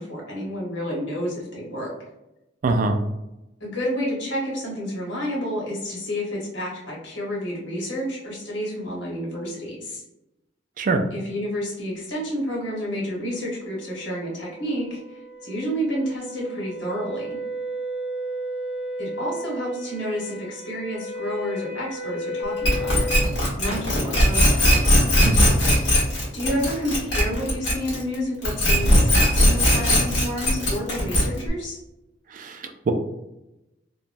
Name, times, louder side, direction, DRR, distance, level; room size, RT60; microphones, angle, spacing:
voice 1, 0.0-1.9 3.6-10.0 11.1-17.4 19.0-23.1 23.6-24.7 26.3-31.8, equal, 90° left, -4 dB, 1.2 m, -30 dB
voice 2, 2.6-3.0 10.8-11.0 25.2-25.5 32.3-32.9, right 3 dB, 45° right, 6 dB, 0.3 m, -23 dB
sound 1, 13.3-23.3, equal, 35° left, 0.6 m, -34 dB
sound 2, 22.6-28.1 28.4-31.5, left 1 dB, 70° left, 1.3 m, -18 dB
2.9 x 2.2 x 2.5 m, 0.92 s
head